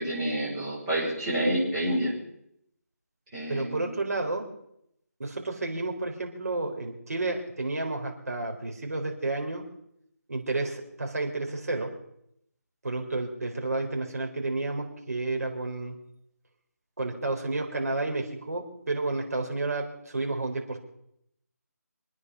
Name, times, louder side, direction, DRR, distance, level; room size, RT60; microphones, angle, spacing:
voice 1, 0.0-2.1 3.3-3.9, right 1 dB, 15° right, -8 dB, 6.5 m, -28 dB
voice 2, 3.5-4.5 5.2-9.6 10.3-11.9 12.8-16.0 17.0-20.8, right 2 dB, 60° right, 2 dB, 4.2 m, -31 dB
26.0 x 9.7 x 5.5 m, 0.74 s
figure-of-eight pair, 170°, 9 cm